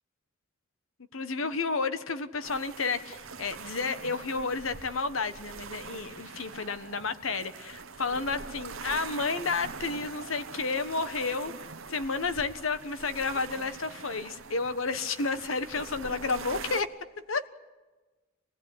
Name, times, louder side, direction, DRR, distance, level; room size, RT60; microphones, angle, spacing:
voice 1, 1.1-16.9 17.3-17.5, left 4 dB, 80° left, 12 dB, 1.3 m, -31 dB
sound 1, 2.4-16.8, right 5 dB, 80° right, 1.1 m, -43 dB
25.0 x 19.5 x 9.9 m, 1.2 s
head